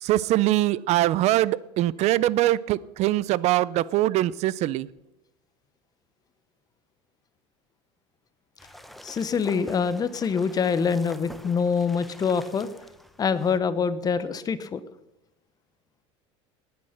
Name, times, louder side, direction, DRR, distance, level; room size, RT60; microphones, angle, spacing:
voice 1, 0.0-4.9, right 15 dB, 45° right, 21 dB, 0.6 m, -23 dB
sound 1, 8.6-13.6, equal, ahead, 0.9 m, -46 dB
voice 2, 9.0-12.7 13.2-14.8, left 6 dB, 25° left, 13 dB, 1.0 m, -25 dB
18.5 x 9.6 x 5.9 m, 0.92 s
supercardioid pair, 125°, 15 cm